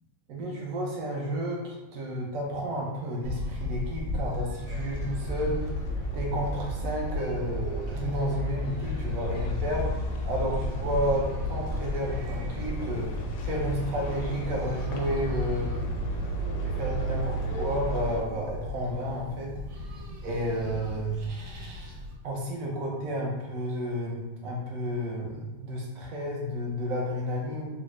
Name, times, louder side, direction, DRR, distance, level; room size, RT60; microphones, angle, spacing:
voice 1, 0.3-5.7 6.1-16.1 16.6-19.5 20.2-21.2 22.2-27.7, equal, 70° right, -2 dB, 0.8 m, -31 dB
sound 1, 3.2-22.1, left 2 dB, 90° right, 1.4 m, -35 dB
sound 2, 4.6-18.2, right 2 dB, 75° left, 1.2 m, -34 dB
3.7 x 2.0 x 3.0 m, 1.1 s
omnidirectional pair, 2.0 m